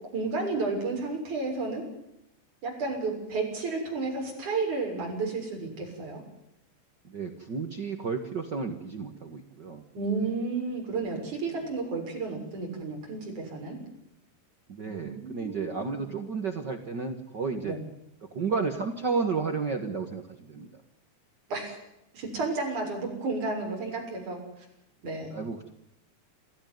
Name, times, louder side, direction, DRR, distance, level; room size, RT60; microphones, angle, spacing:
voice 1, 0.1-1.8 2.6-6.2 9.9-13.8 14.8-16.0 17.6-17.8 21.5-21.8 22.1-24.4 25.0-25.4, right 3 dB, 45° right, 1 dB, 8.0 m, -32 dB
voice 2, 7.0-9.8 14.7-17.8 18.3-20.7 25.3-25.7, right 5 dB, 85° right, 5 dB, 0.9 m, -32 dB
27.0 x 15.0 x 9.4 m, 0.85 s
omnidirectional pair, 4.9 m